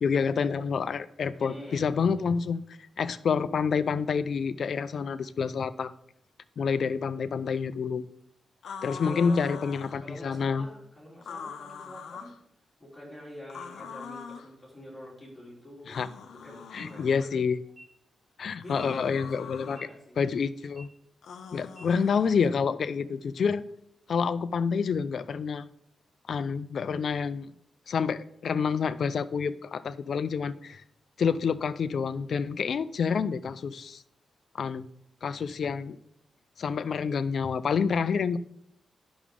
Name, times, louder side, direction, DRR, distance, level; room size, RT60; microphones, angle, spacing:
voice 1, 0.0-2.6 3.0-5.9 6.6-8.0 8.8-10.7 15.9-16.1 16.7-17.6 18.4-19.8 20.2-20.9 21.5-23.6 24.1-25.7 26.3-27.5 27.9-30.8 31.2-34.0 34.5-34.9 35.2-36.0 36.6-38.4, left 6 dB, 55° left, 14 dB, 0.4 m, -28 dB
voice 2, 1.4-2.3 9.0-9.7 10.0-12.3 12.8-16.0 16.3-17.4 18.6-20.2, equal, 10° left, -5 dB, 3.3 m, -45 dB
sound 1, 8.6-10.0 11.2-12.4 13.5-14.5 15.9-17.3 18.6-19.8 21.2-22.5, left 6 dB, 85° left, 0.7 m, -43 dB
sound 2, 16.6-16.8 17.6-17.8 18.6-18.8 19.6-19.8 20.6-20.8 21.6-21.8, right 1 dB, 20° right, 3.7 m, -50 dB
10.0 x 6.1 x 3.7 m, 0.72 s
wide cardioid pair, 165°, 0 cm